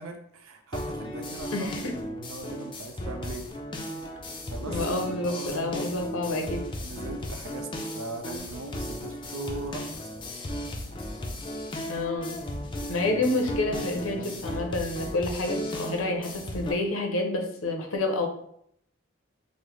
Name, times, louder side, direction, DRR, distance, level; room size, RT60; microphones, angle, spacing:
voice 1, 0.0-3.5 4.5-5.8 6.8-7.7 7.9-9.9, right 2 dB, 80° right, 5 dB, 0.5 m, -39 dB
sound 1, 0.7-16.7, left 1 dB, 25° left, 0.4 m, -35 dB
voice 2, 1.5-2.0 4.6-6.7 11.9-12.4 12.9-18.3, left 2 dB, 80° left, 3 dB, 0.6 m, -29 dB
3.7 x 2.0 x 3.0 m, 0.69 s
head